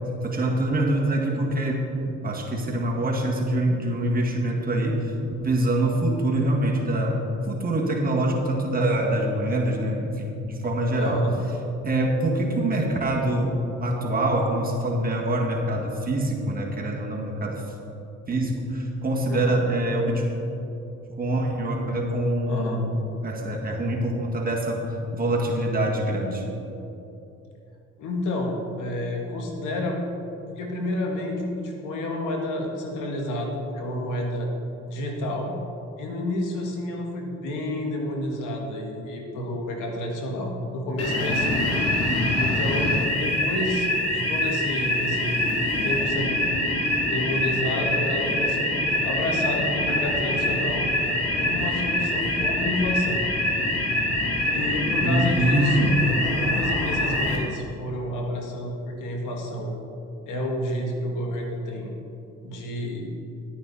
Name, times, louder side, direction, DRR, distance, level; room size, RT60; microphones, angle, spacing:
voice 1, 0.2-5.1 5.4-11.2 11.8-17.6 18.3-20.3 21.2-22.9 23.2-24.8 25.1-26.4 42.1-42.4 55.0-55.9, right 1 dB, 30° right, -1 dB, 1.9 m, -25 dB
voice 2, 11.0-11.3 19.3-19.6 22.5-22.8 28.0-30.0 30.5-34.5 34.9-35.5 36.0-41.6 42.3-45.5 45.8-46.5 47.0-50.8 51.3-53.2 54.5-59.7 60.3-61.9 62.4-63.1, left 1 dB, 90° left, 1 dB, 1.7 m, -30 dB
sound 1, 41.0-57.4, left 1 dB, 55° left, 2.2 m, -25 dB
11.0 x 9.3 x 4.2 m, 2.9 s
cardioid pair, 90°, 30 cm